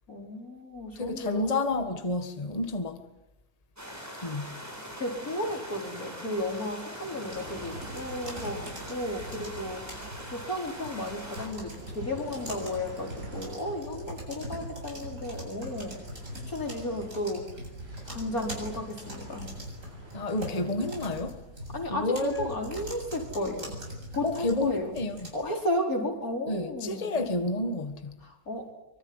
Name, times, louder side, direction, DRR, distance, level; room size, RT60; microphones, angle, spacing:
voice 1, 0.1-1.5 5.0-9.8 10.3-16.0 16.5-17.5 18.0-19.5 21.7-23.7 24.1-24.9 25.3-27.2 28.2-28.7, left 1 dB, 75° left, 5.3 m, -33 dB
voice 2, 0.9-3.0 4.2-4.6 20.1-21.4 21.9-22.5 24.2-25.3 26.5-28.1, left 2 dB, 25° left, 1.7 m, -30 dB
sound 1, 3.8-11.5, equal, 10° right, 5.9 m, -42 dB
sound 2, 5.0-21.2, equal, 40° right, 7.9 m, -51 dB
sound 3, 7.3-25.3, equal, 60° right, 8.1 m, -42 dB
24.5 x 23.5 x 9.8 m
omnidirectional pair, 1.5 m